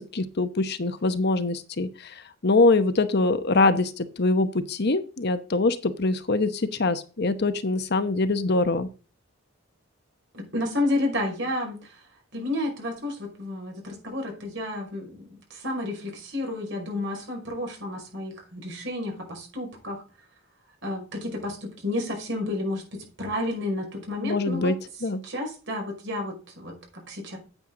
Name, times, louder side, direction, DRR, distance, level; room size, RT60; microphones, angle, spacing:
voice 1, 0.0-8.9 24.2-24.7 25.0-25.2, left 3 dB, 50° left, 11 dB, 0.9 m, -24 dB
voice 2, 10.3-12.0 12.3-20.0 20.8-24.7 25.2-27.4, left 1 dB, 60° right, 1 dB, 5.4 m, -31 dB
9.0 x 9.0 x 3.7 m, 0.35 s
head